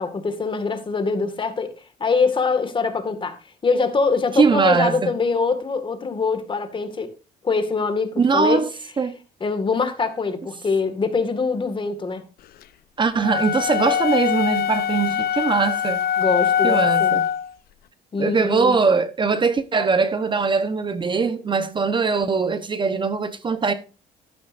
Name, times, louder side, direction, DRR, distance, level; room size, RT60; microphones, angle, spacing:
voice 1, 0.0-1.7 2.0-3.4 3.6-7.1 7.4-8.6 9.4-12.3 16.2-17.2 18.1-18.8, left 4 dB, 30° left, 1.8 m, -23 dB
voice 2, 4.3-5.1 8.2-8.7 9.0-9.2 13.0-16.0 16.6-17.2 18.2-23.7, right 5 dB, 30° right, 1.0 m, -21 dB
sound 1, 13.2-17.5, left 9 dB, 65° left, 0.8 m, -22 dB
12.0 x 11.5 x 2.6 m
cardioid pair, 110°, 17 cm